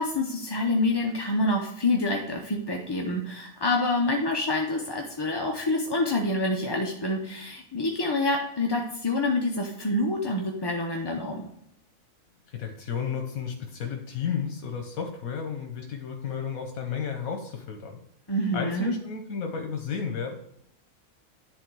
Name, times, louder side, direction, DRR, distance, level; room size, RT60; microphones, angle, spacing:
voice 1, 0.0-11.5 18.3-18.9, left 2 dB, 25° left, 1 dB, 0.5 m, -27 dB
voice 2, 12.5-18.0 18.5-20.3, left 6 dB, 85° left, 4 dB, 1.3 m, -32 dB
10.5 x 3.9 x 4.6 m, 0.76 s
omnidirectional pair, 1.4 m